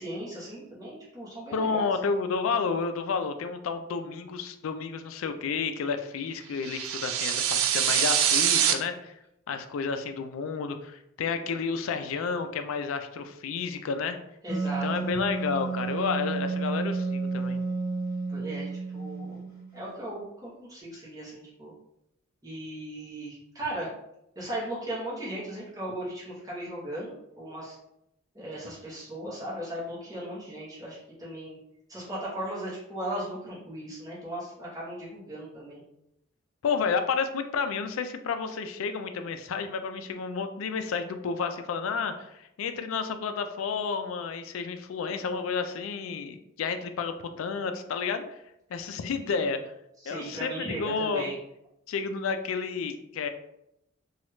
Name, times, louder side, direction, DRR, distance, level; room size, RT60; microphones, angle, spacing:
voice 1, 0.0-1.9 14.4-15.1 18.3-19.4 19.7-21.7 22.4-23.9 24.4-27.8 28.3-31.6 31.9-35.8 50.0-51.4, right 1 dB, 20° right, -8 dB, 0.9 m, -37 dB
voice 2, 1.5-9.1 9.5-14.2 14.8-17.6 36.6-48.2 48.7-49.6 50.1-51.3 51.9-53.3, left 5 dB, 80° left, 8 dB, 0.3 m, -31 dB
sound 1, 6.6-8.7, right 9 dB, 75° right, 0.3 m, -24 dB
Wind instrument woodwind instrument, 14.5-19.9, right 4 dB, 50° right, 1.0 m, -31 dB
3.0 x 2.3 x 3.0 m, 0.81 s
head